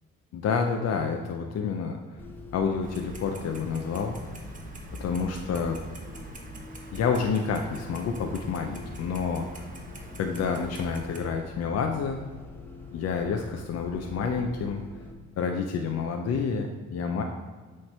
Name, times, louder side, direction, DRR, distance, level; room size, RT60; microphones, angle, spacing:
voice 1, 0.3-2.0 2.5-4.2 5.0-5.8 6.9-9.5 10.2-12.2 12.9-14.8 15.4-17.2, left 5 dB, 60° left, 3 dB, 0.6 m, -28 dB
Bus, 2.2-15.1, left 2 dB, 5° left, 0.9 m, -45 dB
Clock, 2.8-11.2, right 2 dB, 25° right, 0.9 m, -45 dB
7.9 x 3.3 x 4.3 m, 1.4 s
cardioid pair, 90°, 30 cm